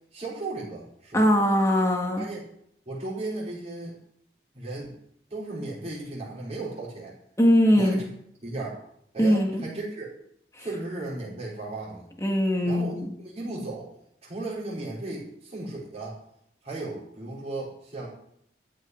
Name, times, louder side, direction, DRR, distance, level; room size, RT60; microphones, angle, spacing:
voice 1, 0.1-1.2 2.2-2.4 2.9-4.0 4.5-4.9 5.3-7.1 7.7-8.0 8.4-8.8 9.1-10.1 10.6-12.1 12.6-13.9 14.2-16.2 16.6-18.1, right 2 dB, 35° right, -7 dB, 4.9 m, -35 dB
voice 2, 1.1-2.3 7.4-8.0 9.2-9.6 10.5-10.6 12.2-13.1, equal, 15° left, 1 dB, 1.8 m, -21 dB
13.5 x 5.6 x 9.6 m, 0.73 s
head